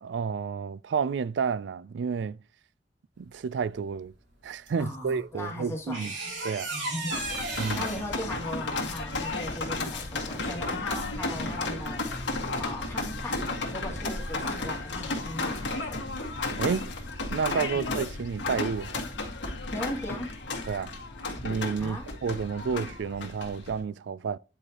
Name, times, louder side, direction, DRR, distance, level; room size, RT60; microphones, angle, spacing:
voice 1, 0.0-2.4 3.2-4.1 4.4-6.1 6.4-6.7 7.6-7.9 16.6-16.9 17.3-19.0 20.7-20.9 21.4-24.4, right 6 dB, 70° right, 0.4 m, -30 dB
sound 1, 4.7-4.8 5.9-8.1, right 2 dB, 85° right, 3.3 m, -34 dB
voice 2, 4.8-6.4 6.7-7.5 7.7-12.1 12.6-16.0 17.7-17.8 19.7-20.3 21.8-22.1, left 1 dB, 15° left, 2.2 m, -38 dB
sound 2, 7.1-23.8, left 2 dB, 85° left, 1.8 m, -33 dB
9.8 x 4.8 x 3.0 m
head